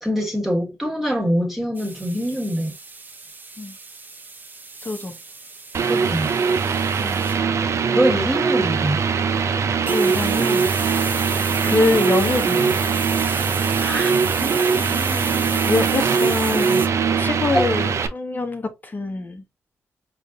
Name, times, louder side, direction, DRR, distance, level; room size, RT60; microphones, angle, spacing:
voice 1, 0.0-2.7 5.8-6.3 7.9-9.0 13.8-15.7 17.5-17.7, equal, 5° right, 1.5 m, -25 dB
sound 1, 1.8-7.4 9.8-16.9, right 3 dB, 35° right, 0.8 m, -33 dB
voice 2, 4.8-5.2 6.9-7.2 9.8-10.7 11.2-13.0 15.6-16.9 17.2-19.4, left 3 dB, 35° left, 1.0 m, -25 dB
sound 2, 5.7-18.1, right 6 dB, 60° right, 0.5 m, -21 dB
5.1 x 2.6 x 2.4 m
cardioid pair, 60°, 6 cm